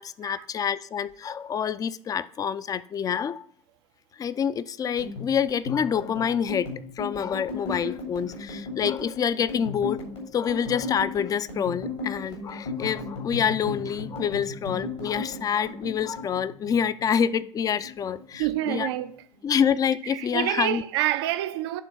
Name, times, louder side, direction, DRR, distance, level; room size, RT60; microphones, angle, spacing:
voice 1, 0.0-3.4 4.2-6.7 7.0-10.0 10.3-18.9 19.4-20.8, left 8 dB, 25° left, 0.4 m, -27 dB
sound 1, 4.8-17.4 17.7-18.7 19.0-19.4 19.7-20.3, left 2 dB, 80° left, 3.0 m, -36 dB
voice 2, 18.4-19.2 20.1-21.8, right 14 dB, 65° right, 0.4 m, -27 dB
9.1 x 3.7 x 5.6 m
figure-of-eight pair, 70°, 14 cm